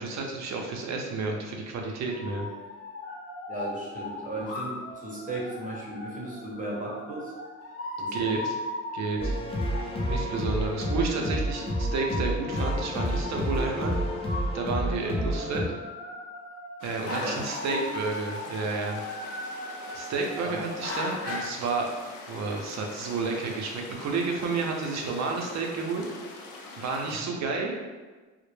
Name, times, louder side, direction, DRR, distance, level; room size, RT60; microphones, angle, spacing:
voice 1, 0.0-2.5 8.1-8.5 8.9-9.4 10.1-14.0 14.5-15.7 16.8-19.0 19.9-21.9 22.3-26.0 26.8-27.7, right 4 dB, 65° right, 1 dB, 0.6 m, -31 dB
sound 1, 2.1-21.4, left 2 dB, 50° left, 0.8 m, -38 dB
voice 2, 3.5-7.3 8.0-8.4 17.2-17.7 20.4-20.6 27.2-27.3, right 1 dB, 25° right, -4 dB, 0.7 m, -36 dB
sound 2, 9.2-15.6, equal, 20° left, 0.5 m, -29 dB
sound 3, 16.8-27.2, left 3 dB, 85° left, 0.5 m, -44 dB
2.1 x 2.0 x 3.1 m, 1.3 s
cardioid pair, 90°, 30 cm